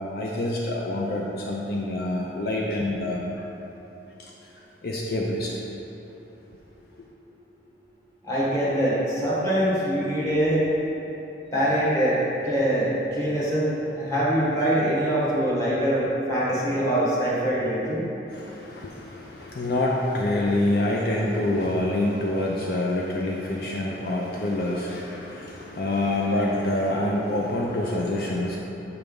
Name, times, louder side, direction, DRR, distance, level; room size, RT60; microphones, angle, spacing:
voice 1, 0.0-3.5 4.2-4.3 4.8-5.6 7.0-7.1 18.3-28.6, left 1 dB, 55° left, -3 dB, 0.5 m, -26 dB
voice 2, 8.2-10.6 11.5-12.2 12.4-18.0, right 1 dB, 15° left, -7 dB, 1.3 m, -23 dB
6.9 x 3.3 x 5.3 m, 3.0 s
head